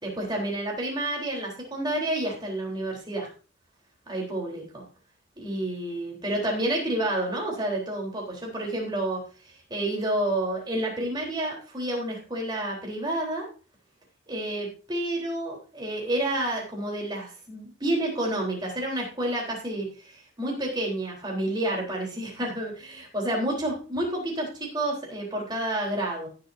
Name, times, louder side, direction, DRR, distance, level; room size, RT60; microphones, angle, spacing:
voice 1, 0.0-3.3 4.1-4.8 5.4-13.5 14.3-26.3, right 1 dB, 20° right, -2 dB, 3.7 m, -29 dB
17.0 x 7.7 x 2.7 m, 0.36 s
head